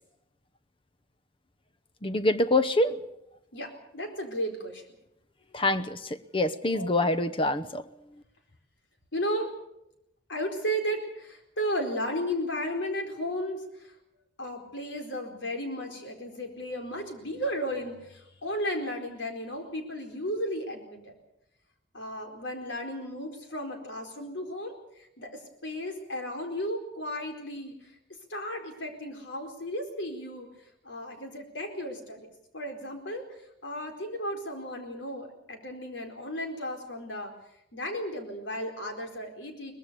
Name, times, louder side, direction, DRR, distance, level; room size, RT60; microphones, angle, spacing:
voice 1, 2.0-3.0 5.5-7.8, left 2 dB, 30° left, 12 dB, 0.8 m, -25 dB
voice 2, 3.5-4.8 6.7-7.3 9.1-9.5 10.3-13.9 14.4-21.1 21.9-27.9 28.3-30.5 30.8-37.3 37.7-39.7, equal, 80° left, 4 dB, 4.4 m, -34 dB
23.0 x 20.0 x 6.9 m, 0.83 s
head